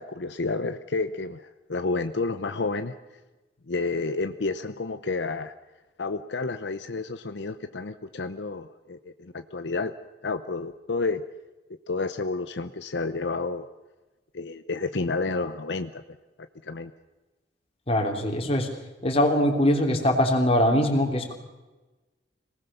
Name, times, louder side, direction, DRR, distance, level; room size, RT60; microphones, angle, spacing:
voice 1, 0.0-3.0 3.7-5.5 6.0-9.9 10.2-11.2 11.9-13.7 14.3-16.0 16.6-16.9, left 3 dB, 75° left, 9 dB, 0.8 m, -30 dB
voice 2, 17.9-18.7 19.0-21.3, left 1 dB, 35° left, 2 dB, 3.4 m, -22 dB
26.0 x 19.0 x 6.9 m, 1.2 s
head